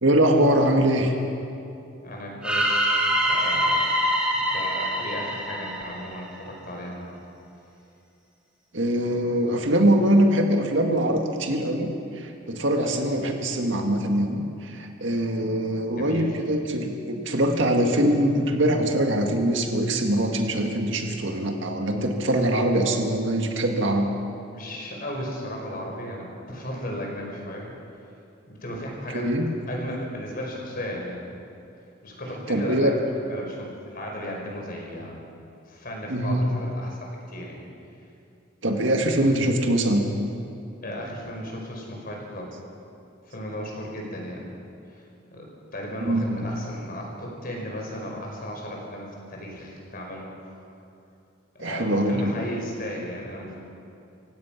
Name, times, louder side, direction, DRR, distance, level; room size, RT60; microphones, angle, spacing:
voice 1, 0.0-1.1 8.7-24.1 29.1-29.5 32.5-32.9 36.1-36.5 38.6-40.1 46.0-46.5 51.6-52.3, right 1 dB, 60° right, 3 dB, 2.0 m, -23 dB
voice 2, 2.0-2.9 3.2-3.9 4.3-7.1 15.8-16.3 24.5-27.7 28.5-29.3 29.7-31.3 32.0-32.9 33.3-35.2 35.7-37.6 40.8-42.5 43.3-44.5 44.9-45.0 45.3-50.6 51.5-53.6, equal, 45° left, 0 dB, 4.9 m, -35 dB
sound 1, 2.4-6.5, equal, 5° right, 2.6 m, -24 dB
26.5 x 16.5 x 6.0 m, 2.6 s
head